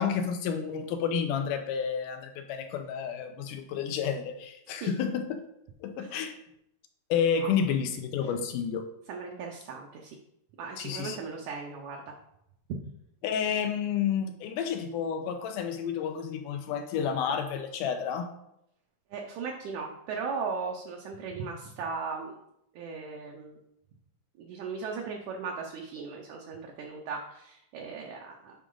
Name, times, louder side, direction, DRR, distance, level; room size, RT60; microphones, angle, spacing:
voice 1, 0.0-5.4 5.8-6.3 7.1-8.8 10.8-11.2 13.2-18.3, left 7 dB, 80° left, 7 dB, 2.1 m, -30 dB
voice 2, 9.1-10.2 10.6-12.1 19.1-22.4 22.7-23.6 24.4-28.5, right 5 dB, 75° right, 0 dB, 1.9 m, -37 dB
8.3 x 4.9 x 3.8 m, 0.80 s
omnidirectional pair, 3.9 m